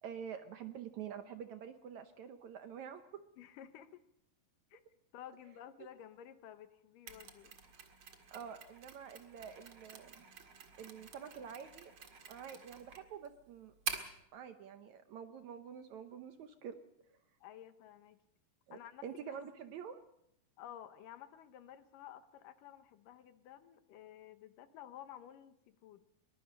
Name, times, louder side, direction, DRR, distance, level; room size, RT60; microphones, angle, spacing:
voice 1, 0.0-3.2 8.3-10.2 10.8-11.9 12.3-13.7 14.3-16.8 18.7-20.0, right 8 dB, 70° right, 9 dB, 1.9 m, -47 dB
voice 2, 3.4-4.0 4.7-4.8 5.1-7.6 17.4-18.2 18.7-19.4 20.6-26.1, left 11 dB, 75° left, 11 dB, 2.5 m, -53 dB
Mechanisms, 7.1-14.2, right 6 dB, 45° right, 2.1 m, -48 dB
22.5 x 21.5 x 5.4 m, 0.75 s
omnidirectional pair, 4.1 m